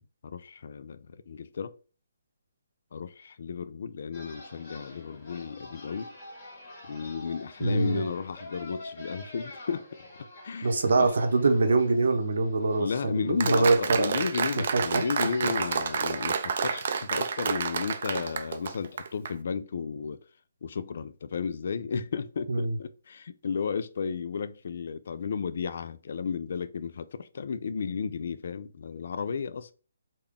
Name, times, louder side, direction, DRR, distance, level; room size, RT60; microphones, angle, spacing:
voice 1, 0.2-1.7 2.9-6.2 6.9-10.1 10.4-11.1 12.8-20.2 20.6-29.7, left 6 dB, 55° left, 0.3 m, -33 dB
sound 1, 4.1-16.3, left 1 dB, 40° left, 1.7 m, -47 dB
voice 2, 7.6-8.0 10.6-14.2 14.7-15.0 22.5-22.8, right 3 dB, 70° right, 0.8 m, -24 dB
Applause, 13.4-19.3, right 6 dB, 50° right, 0.4 m, -30 dB
3.6 x 2.2 x 3.5 m
hypercardioid pair, 165°, 0 cm